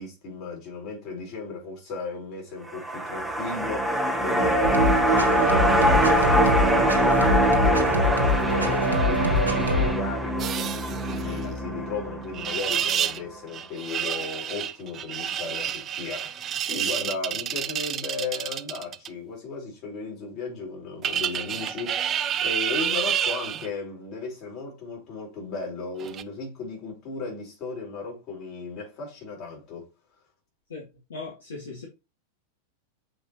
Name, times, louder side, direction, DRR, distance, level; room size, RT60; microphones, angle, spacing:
voice 1, 0.0-29.9, left 4 dB, 40° left, 4.6 m, -35 dB
sound 1, 2.6-13.1 13.4-13.5, right 1 dB, 5° right, 0.9 m, -23 dB
sound 2, 4.6-9.9, left 2 dB, 80° right, 1.2 m, -25 dB
sound 3, 10.4-11.4 12.3-13.2 13.5-19.1 21.0-23.7 26.0-26.2, right 9 dB, 30° right, 0.5 m, -29 dB
voice 2, 30.7-31.9, left 3 dB, 65° left, 2.1 m, -39 dB
6.7 x 5.1 x 3.1 m
figure-of-eight pair, 90°, 0 cm